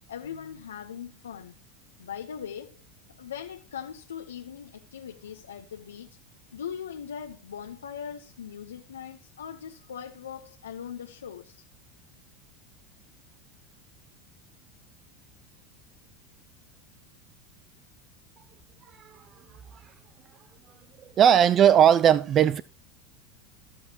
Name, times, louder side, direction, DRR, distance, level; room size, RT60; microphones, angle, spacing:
voice 1, 0.1-1.5 2.0-2.8 3.2-6.1 6.5-11.6, left 8 dB, 90° left, 0.8 m, -40 dB
voice 2, 21.2-22.6, right 9 dB, 40° right, 0.5 m, -18 dB
17.5 x 6.3 x 2.9 m
hypercardioid pair, 95°, 0 cm